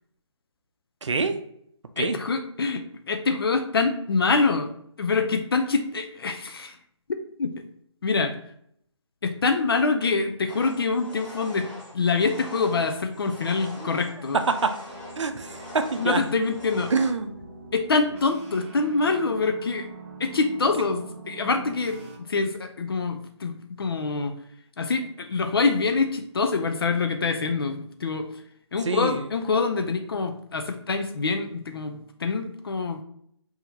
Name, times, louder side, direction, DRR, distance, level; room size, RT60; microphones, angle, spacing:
voice 1, 1.0-1.4 2.0-2.2 13.8-13.9 14.5-14.7 15.2-16.2 16.9-17.4 28.8-29.3, right 4 dB, 70° right, 7 dB, 0.6 m, -26 dB
voice 2, 2.0-2.8 3.1-4.7 5.0-6.8 7.4-7.6 8.0-8.4 9.2-14.4 16.0-16.9 17.7-19.9 20.2-24.3 24.8-28.3 28.7-33.0, left 4 dB, 50° left, 6 dB, 0.5 m, -25 dB
sound 1, 10.5-17.1, left 1 dB, 5° left, 1.1 m, -43 dB
sound 2, 14.9-22.2, right 3 dB, 25° right, 0.6 m, -43 dB
5.7 x 2.8 x 2.7 m, 0.70 s
figure-of-eight pair, 155°, 16 cm